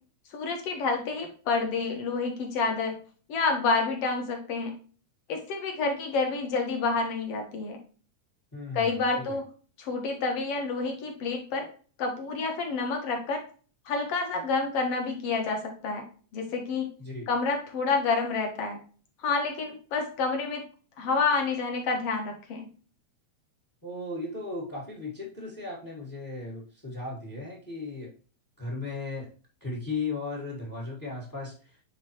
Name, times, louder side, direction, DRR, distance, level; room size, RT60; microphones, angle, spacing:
voice 1, 0.3-2.9 3.3-4.7 5.3-7.8 8.7-9.4 9.8-11.7 12.0-13.4 13.9-16.0 16.3-16.9 17.3-18.8 19.2-20.6 21.0-22.7, left 4 dB, 55° left, 3 dB, 2.4 m, -28 dB
voice 2, 8.5-9.4 17.0-17.3 23.8-28.1 28.6-29.3 29.6-31.8, left 3 dB, 15° left, -2 dB, 0.8 m, -36 dB
9.7 x 3.7 x 3.0 m, 0.39 s
omnidirectional pair, 3.4 m